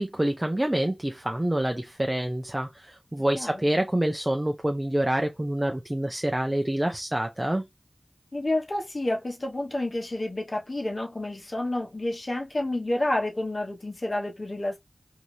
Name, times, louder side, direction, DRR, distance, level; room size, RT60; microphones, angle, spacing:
voice 1, 0.0-7.7, right 1 dB, 20° right, 0.5 m, -27 dB
voice 2, 8.3-14.8, left 1 dB, 55° left, 1.1 m, -29 dB
2.7 x 2.4 x 3.2 m
wide cardioid pair, 40°, 0 cm